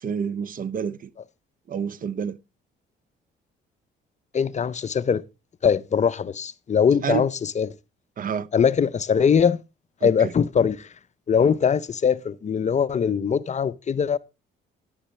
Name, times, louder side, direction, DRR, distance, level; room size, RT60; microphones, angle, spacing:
voice 1, 0.0-1.1 1.7-2.4 7.0-7.3 8.2-8.5 10.0-10.3, right 7 dB, 45° right, 0.5 m, -28 dB
voice 2, 4.3-5.2 5.6-7.7 8.5-9.6 10.0-10.9 11.3-14.2, left 7 dB, 35° left, 0.5 m, -21 dB
10.0 x 10.0 x 3.1 m
cardioid pair, 90°, 20 cm